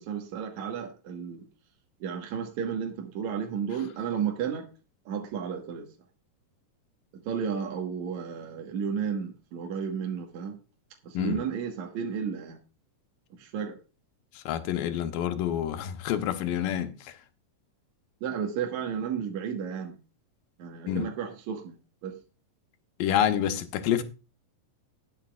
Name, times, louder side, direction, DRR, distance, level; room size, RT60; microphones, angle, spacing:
voice 1, 0.0-1.4 2.0-4.7 5.1-5.9 7.3-10.6 11.0-12.6 13.4-13.8 18.2-20.0 20.6-21.8 22.0-22.2, right 7 dB, 65° right, 2.5 m, -32 dB
voice 2, 14.4-17.1 20.9-21.1 23.0-24.0, left 10 dB, 85° left, 2.6 m, -28 dB
19.5 x 7.0 x 2.4 m
omnidirectional pair, 3.8 m